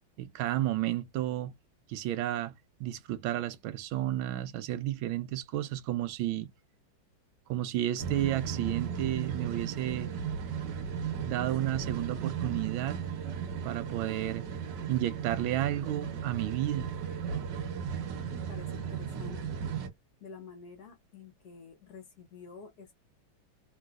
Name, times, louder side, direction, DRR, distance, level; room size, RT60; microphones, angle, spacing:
voice 1, 0.2-1.5 1.9-2.5 2.8-6.5 7.5-10.1 11.3-13.0 13.6-14.5 14.9-16.9, right 13 dB, 80° right, 1.4 m, -32 dB
sound 1, 8.0-19.9, right 7 dB, 65° right, 1.4 m, -36 dB
voice 2, 18.3-19.6 20.2-22.9, left 5 dB, 60° left, 1.2 m, -49 dB
3.3 x 3.1 x 2.3 m
omnidirectional pair, 2.2 m